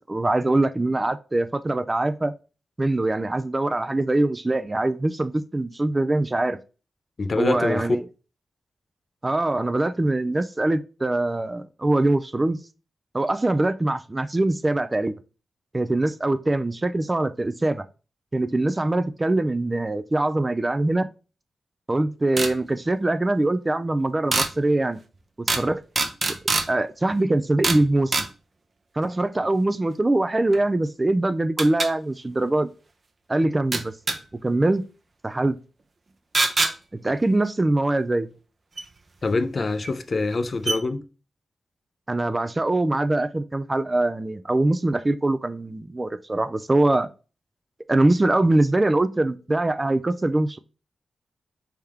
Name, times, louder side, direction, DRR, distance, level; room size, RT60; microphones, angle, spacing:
voice 1, 0.0-2.3 2.8-6.6 7.4-8.1 9.2-12.6 13.1-15.1 15.7-17.8 18.3-21.1 21.9-25.0 25.4-25.8 26.7-28.3 29.0-32.7 33.3-33.9 34.4-34.8 35.2-35.6 36.9-38.3 42.1-47.1 47.9-50.6, right 2 dB, 20° right, 0.3 m, -23 dB
voice 2, 7.2-7.9 39.2-41.0, left 3 dB, 45° left, 0.5 m, -25 dB
sound 1, 22.4-22.5 24.3-24.5 25.5-25.7 25.9-26.7 27.6-27.8 28.1-28.3 30.5-30.6 31.6-31.9 33.7-34.2 36.3-36.7 38.8-38.9 39.8-39.9 40.3-40.4 40.6-40.8, right 3 dB, 40° right, 0.7 m, -23 dB
4.3 x 3.5 x 3.5 m
wide cardioid pair, 100°, 0 cm